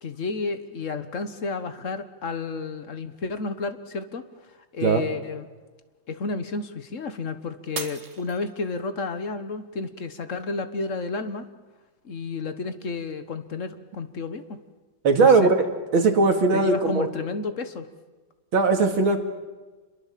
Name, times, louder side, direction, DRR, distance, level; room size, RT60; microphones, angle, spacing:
voice 1, 0.0-4.2 4.7-5.5 6.1-11.5 12.0-14.6 15.2-15.5 16.5-17.9, left 4 dB, 45° left, 10 dB, 1.4 m, -31 dB
Shatter, 7.7-9.0 9.6-10.0 10.6-10.7, right 5 dB, 40° right, 1.7 m, -37 dB
voice 2, 15.0-15.6 15.9-17.1 18.5-19.2, right 4 dB, 85° right, 5 dB, 3.0 m, -19 dB
27.0 x 22.5 x 7.5 m, 1.3 s
omnidirectional pair, 2.2 m